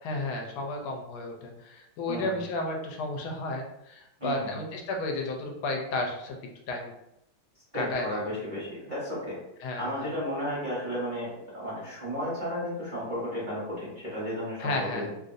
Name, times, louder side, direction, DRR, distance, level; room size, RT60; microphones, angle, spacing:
voice 1, 0.0-6.4 6.7-6.9 7.8-8.2 9.6-10.0 14.6-15.1, left 2 dB, 80° left, 2 dB, 1.4 m, -32 dB
voice 2, 2.1-2.4 4.2-4.6 7.7-9.4 9.8-15.1, equal, 30° right, -9 dB, 0.9 m, -33 dB
3.4 x 2.5 x 2.5 m, 0.85 s
omnidirectional pair, 2.2 m